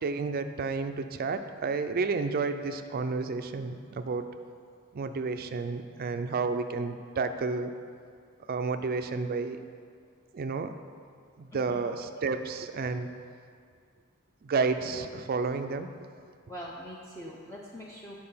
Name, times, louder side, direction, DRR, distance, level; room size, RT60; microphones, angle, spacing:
voice 1, 0.0-4.3 4.9-7.7 8.5-9.6 10.3-10.7 11.4-13.1 14.4-15.9, right 4 dB, 45° right, 8 dB, 0.4 m, -31 dB
voice 2, 11.5-11.9 16.5-18.2, equal, 15° left, -3 dB, 0.5 m, -43 dB
8.7 x 4.8 x 5.5 m, 2.2 s
head